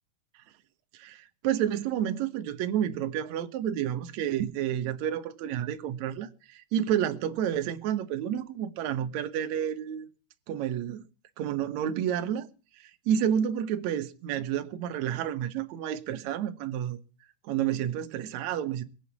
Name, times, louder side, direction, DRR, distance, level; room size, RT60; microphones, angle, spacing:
voice 1, 0.9-10.1 10.5-11.0 11.4-12.5 12.8-17.0 17.4-18.8, right 10 dB, 65° right, 1.9 m, -30 dB
22.0 x 8.0 x 7.2 m
omnidirectional pair, 4.6 m